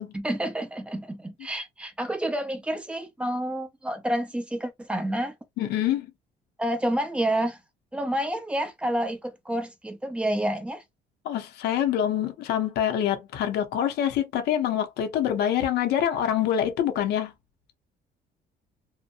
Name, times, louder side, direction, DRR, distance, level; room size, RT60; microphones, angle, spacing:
voice 1, 0.1-5.3 6.6-7.6 7.9-10.8, right 1 dB, 5° right, 0.7 m, -29 dB
voice 2, 5.6-6.1 11.2-17.3, left 10 dB, 75° left, 0.7 m, -25 dB
2.8 x 2.1 x 2.5 m
cardioid pair, 110°, 17 cm